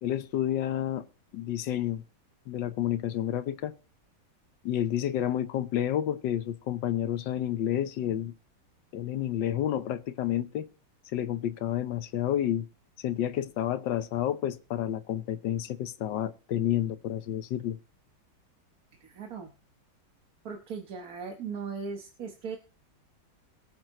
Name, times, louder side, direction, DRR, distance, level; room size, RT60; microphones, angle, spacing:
voice 1, 0.0-1.1 1.3-2.0 2.5-3.7 4.6-8.3 8.9-10.7 11.1-12.7 13.0-17.8, left 11 dB, 80° left, 1.5 m, -30 dB
voice 2, 18.9-19.5 20.4-22.6, right 5 dB, 55° right, 1.5 m, -38 dB
22.0 x 9.1 x 3.0 m
omnidirectional pair, 2.0 m